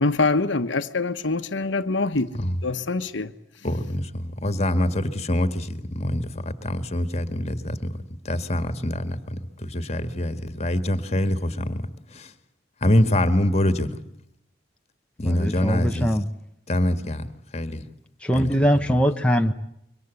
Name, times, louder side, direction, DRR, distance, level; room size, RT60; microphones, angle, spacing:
voice 1, 0.0-2.3 2.6-3.3, left 3 dB, 75° left, 1.2 m, -24 dB
voice 2, 10.7-11.3 12.8-13.7 15.3-15.9 16.7-16.9, left 1 dB, 35° left, 1.9 m, -20 dB
voice 3, 15.2-16.3 18.2-19.5, equal, 5° left, 1.1 m, -21 dB
26.0 x 24.0 x 8.3 m
head